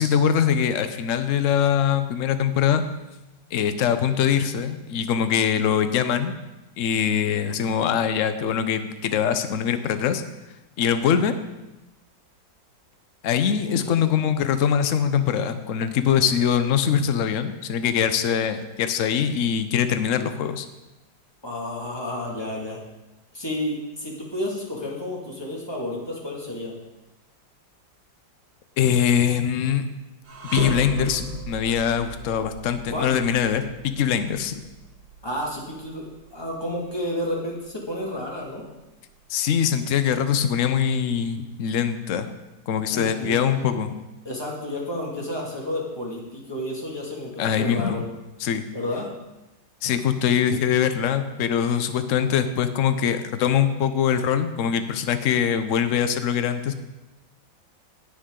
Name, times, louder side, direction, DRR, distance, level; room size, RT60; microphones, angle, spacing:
voice 1, 0.0-2.8 3.5-6.3 6.8-10.2 10.8-11.3 13.2-20.7 28.8-29.8 30.5-34.6 39.3-42.3 42.7-44.0 47.4-48.0 48.4-48.6 49.8-56.7, left 8 dB, 60° left, 10 dB, 0.9 m, -23 dB
voice 2, 21.4-22.8 23.3-26.8 32.9-33.1 35.2-38.6 42.9-43.7 44.2-48.0 48.7-49.1, left 1 dB, 15° left, -3 dB, 2.2 m, -31 dB
sound 1, 30.2-39.5 39.9-40.1 40.9-41.8, right 3 dB, 75° right, 2.0 m, -37 dB
17.5 x 6.5 x 3.8 m, 1.0 s
omnidirectional pair, 2.0 m